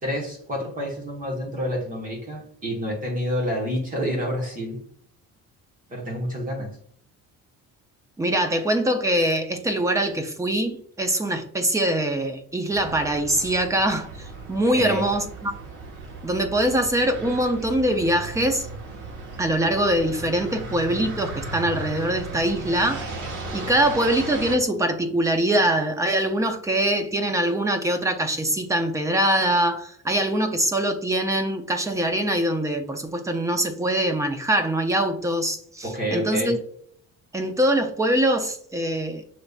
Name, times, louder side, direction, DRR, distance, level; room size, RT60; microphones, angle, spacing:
voice 1, 0.0-4.8 5.9-6.8 14.7-15.1 35.8-36.6, equal, 25° right, 1.4 m, -28 dB
voice 2, 8.2-15.5 16.2-18.7 19.4-23.1 23.5-36.6 37.3-39.2, right 1 dB, 10° right, 0.5 m, -23 dB
sound 1, 12.7-24.6, right 3 dB, 90° right, 1.3 m, -36 dB
6.7 x 3.2 x 2.4 m
cardioid pair, 160°, 31 cm